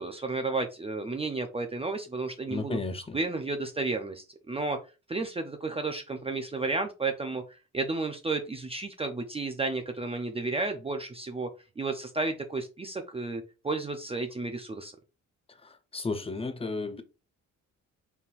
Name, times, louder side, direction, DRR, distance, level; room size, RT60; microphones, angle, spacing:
voice 1, 0.0-2.8 3.1-4.8 5.1-7.4 7.7-11.5 11.8-14.9, right 3 dB, 20° right, 0.6 m, -32 dB
voice 2, 2.5-3.2 15.9-17.0, left 3 dB, 20° left, 0.7 m, -33 dB
4.2 x 3.7 x 2.5 m
cardioid pair, 90°, 30 cm